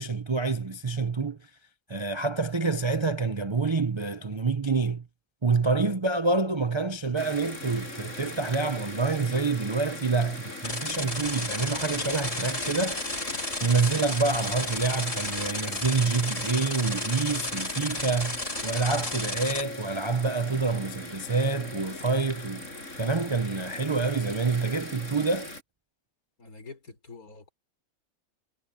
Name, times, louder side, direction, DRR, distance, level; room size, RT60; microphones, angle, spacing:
voice 1, 0.0-1.4 1.9-5.0 5.4-13.0 13.6-22.6 23.0-25.5, right 4 dB, 30° right, 0.6 m, -27 dB
sound 1, 7.2-25.6, left 2 dB, 60° left, 6.8 m, -40 dB
voice 2, 10.2-10.7 26.4-27.5, left 4 dB, 90° left, 4.8 m, -47 dB
sound 2, 10.6-19.6, left 2 dB, 25° left, 2.4 m, -33 dB
omnidirectional pair, 1.5 m